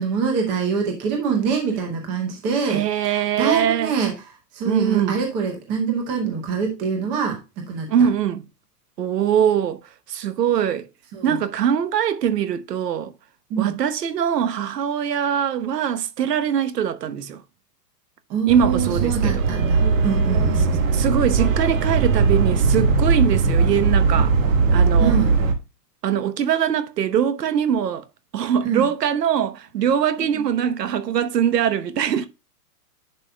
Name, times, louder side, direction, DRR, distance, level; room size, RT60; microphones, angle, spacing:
voice 1, 0.0-4.1 4.5-7.9 11.1-11.4 13.5-13.8 18.3-20.8 25.0-25.3 28.6-28.9, right 6 dB, 10° right, 0.7 m, -25 dB
voice 2, 2.7-3.9 4.6-5.2 7.9-8.4 9.0-9.8 10.1-10.9 11.2-13.1 13.6-17.4 18.5-19.4 20.9-24.3 24.7-25.1 26.0-28.0 28.3-32.3, right 8 dB, 75° right, 1.1 m, -22 dB
sound 1, 18.5-25.5, right 4 dB, 50° right, 1.6 m, -19 dB
10.5 x 5.4 x 2.2 m
hypercardioid pair, 175°, 49 cm